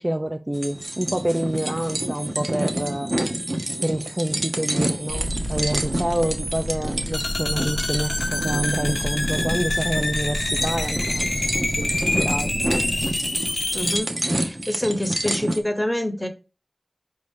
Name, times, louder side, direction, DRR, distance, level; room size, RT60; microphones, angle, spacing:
voice 1, 0.0-3.1 3.8-11.5 11.8-12.5, right 1 dB, 25° right, 0.3 m, -27 dB
sound 1, 0.5-15.6, right 1 dB, 50° right, 0.7 m, -28 dB
sound 2, 5.1-13.1, equal, 75° right, 1.3 m, -31 dB
sound 3, 7.1-14.0, left 2 dB, 75° left, 0.6 m, -27 dB
voice 2, 13.7-16.3, left 1 dB, 10° left, 0.8 m, -26 dB
4.8 x 2.7 x 3.6 m
wide cardioid pair, 40°, 0 cm